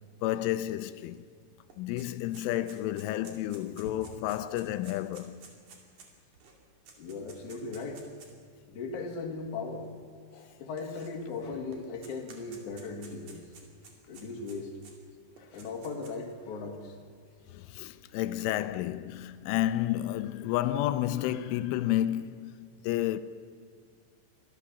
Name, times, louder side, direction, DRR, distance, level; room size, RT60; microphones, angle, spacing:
voice 1, 0.2-1.2 1.8-5.4 17.5-23.2, left 13 dB, 90° left, 3.2 m, -31 dB
sound 1, 1.1-1.2 1.5-8.4 9.2-9.3 10.4-11.4 11.7-14.9 15.4-16.3, right 5 dB, 45° right, 3.3 m, -53 dB
voice 2, 7.0-8.0 8.7-9.9 10.3-13.4 14.1-14.7 15.4-17.0, left 4 dB, 45° left, 3.2 m, -38 dB
24.0 x 15.5 x 7.1 m
omnidirectional pair, 5.5 m